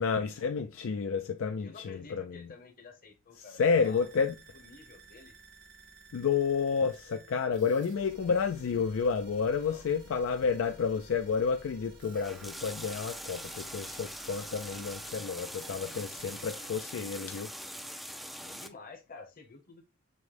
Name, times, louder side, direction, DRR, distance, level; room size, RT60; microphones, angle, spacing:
voice 1, 0.0-2.4 3.6-4.3 6.1-17.5, left 5 dB, 70° left, 0.4 m, -30 dB
voice 2, 1.6-4.1 4.5-5.3 9.6-9.9 16.7-16.8 18.4-19.8, left 3 dB, 45° left, 0.9 m, -50 dB
sound 1, 3.6-16.5, right 3 dB, 65° right, 1.4 m, -54 dB
sound 2, 12.1-18.7, equal, ahead, 0.4 m, -43 dB
6.2 x 2.1 x 3.2 m
head